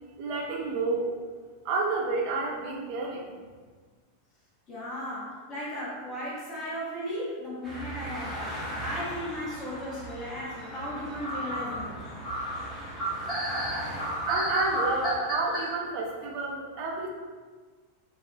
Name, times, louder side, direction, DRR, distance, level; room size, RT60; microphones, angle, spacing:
voice 1, 0.2-1.1 1.6-3.3 14.3-17.1, right 3 dB, 45° right, 0 dB, 0.5 m, -30 dB
voice 2, 4.7-12.0, equal, 30° left, -7 dB, 1.1 m, -36 dB
sound 1, 7.6-15.2, equal, 15° right, 0.9 m, -39 dB
sound 2, 8.6-9.3 9.8-10.4 10.8-10.9 11.2-15.6, equal, 10° left, 1.3 m, -32 dB
3.4 x 2.4 x 2.3 m, 1.4 s
figure-of-eight pair, 90°, 0 cm